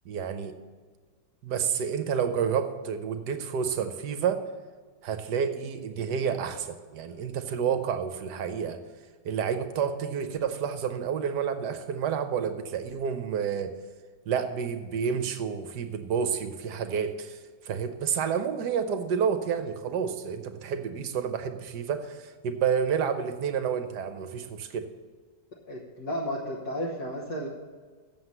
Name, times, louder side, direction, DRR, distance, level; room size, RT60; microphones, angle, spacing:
voice 1, 0.0-0.5 1.4-4.4 5.0-8.8 9.2-13.7 14.3-24.9, right 7 dB, 65° right, 9 dB, 1.3 m, -29 dB
voice 2, 25.7-27.5, equal, 55° left, -4 dB, 1.7 m, -33 dB
7.8 x 7.3 x 7.9 m, 1.5 s
omnidirectional pair, 2.1 m